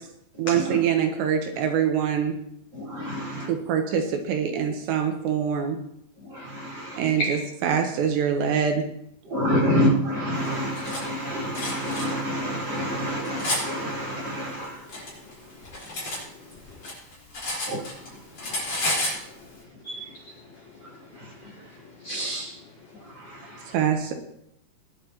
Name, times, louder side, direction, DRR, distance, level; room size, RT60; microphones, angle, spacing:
voice 1, 0.4-2.3 3.5-5.8 7.0-8.9 23.7-24.1, right 8 dB, 80° right, 3.2 m, -24 dB
voice 2, 2.7-3.5 6.2-7.0 9.2-14.9 17.7-18.2 18.9-19.0 20.8-21.5 23.0-23.7, equal, 25° right, 4.9 m, -28 dB
voice 3, 6.6-7.3 18.8-19.4 19.8-20.3 21.4-21.7 22.0-22.5, right 1 dB, 70° left, 1.7 m, -34 dB
Cutlery silverware, 10.4-11.0 11.5-12.1 12.7-13.6 14.5-16.2 16.5-18.1 18.4-19.2, left 1 dB, 30° left, 4.9 m, -30 dB
19.0 x 10.5 x 2.9 m
omnidirectional pair, 5.1 m